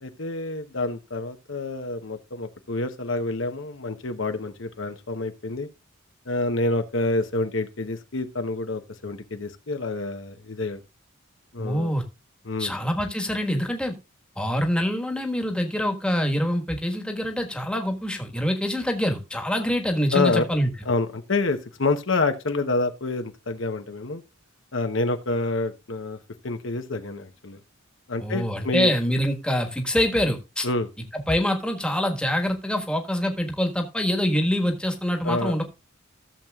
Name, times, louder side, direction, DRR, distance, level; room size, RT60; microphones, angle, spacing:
voice 1, 0.0-5.7 6.3-10.8 11.5-11.9 12.4-12.7 20.1-20.5 20.8-24.2 24.7-26.2 26.4-27.6 28.1-28.9 30.6-30.9 35.2-35.5, left 2 dB, 65° left, 8 dB, 1.0 m, -27 dB
voice 2, 11.6-12.0 12.6-13.9 14.4-20.7 28.2-30.7 31.1-35.6, equal, 5° left, 4 dB, 1.5 m, -25 dB
15.5 x 7.3 x 2.4 m, 0.26 s
head